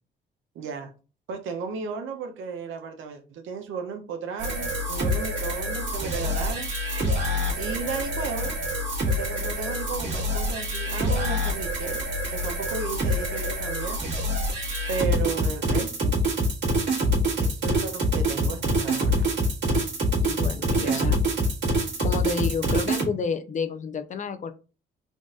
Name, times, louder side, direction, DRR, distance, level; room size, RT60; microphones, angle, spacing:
voice 1, 0.5-0.9 1.3-6.7 7.5-8.6 9.0-12.1 12.3-14.0 14.9-16.1 17.4-19.3 20.7-21.1, right 5 dB, 80° right, 0.8 m, -34 dB
sound 1, 4.4-23.1, equal, 65° right, 1.8 m, -26 dB
voice 2, 20.2-21.2 22.0-24.5, left 5 dB, 40° left, 0.6 m, -30 dB
3.8 x 2.5 x 3.6 m
cardioid pair, 90°, 20 cm